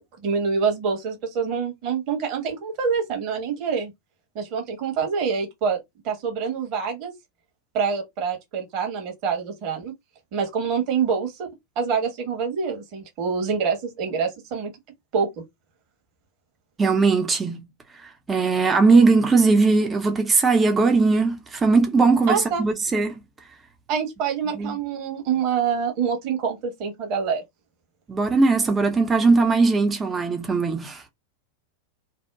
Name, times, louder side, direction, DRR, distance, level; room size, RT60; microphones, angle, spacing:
voice 1, 0.2-3.9 4.3-5.8 6.0-7.1 7.7-9.9 10.3-11.5 11.7-14.7 15.1-15.4 22.3-22.6 23.9-27.4, right 6 dB, 40° right, 1.2 m, -26 dB
voice 2, 16.8-17.6 18.0-23.2 24.5-24.7 28.1-31.1, right 4 dB, 15° right, 0.5 m, -19 dB
2.7 x 2.1 x 3.4 m
figure-of-eight pair, 90°, 0 cm